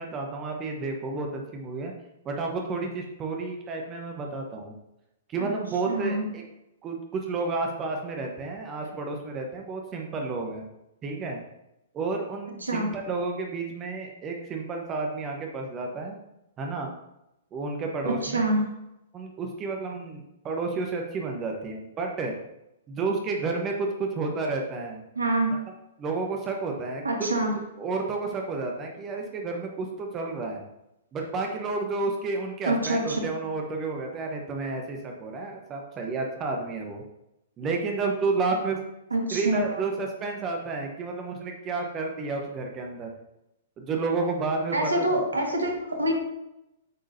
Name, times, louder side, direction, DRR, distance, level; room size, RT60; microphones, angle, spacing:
voice 1, 0.0-1.9 2.2-4.7 5.3-6.4 6.8-10.6 11.0-11.4 11.9-16.2 16.6-16.9 17.5-18.4 19.1-22.4 22.9-25.0 26.0-27.3 27.8-30.6 31.1-37.0 37.6-38.8 39.3-43.1 43.8-45.2, right 3 dB, 25° right, 2 dB, 1.1 m, -31 dB
voice 2, 5.9-6.3 12.6-12.9 18.0-18.6 25.2-25.5 27.0-27.5 32.7-33.2 39.1-39.8 44.7-46.1, right 1 dB, 75° right, 2 dB, 1.7 m, -26 dB
9.3 x 6.4 x 2.8 m, 0.88 s
figure-of-eight pair, 110°, 0 cm